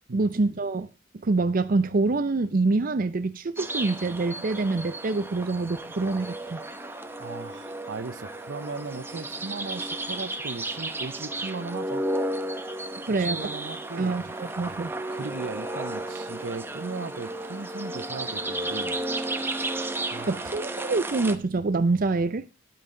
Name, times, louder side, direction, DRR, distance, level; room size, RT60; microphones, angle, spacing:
voice 1, 0.1-0.9 1.1-6.6 13.1-13.5 14.0-14.9 20.3-22.4, right 3 dB, 50° right, 0.5 m, -26 dB
sound 1, 3.6-21.4, right 1 dB, 10° right, 0.9 m, -33 dB
voice 2, 7.2-12.1 13.2-14.2 15.1-19.0 20.1-20.6, right 3 dB, 75° right, 0.8 m, -37 dB
10.5 x 8.9 x 3.8 m
head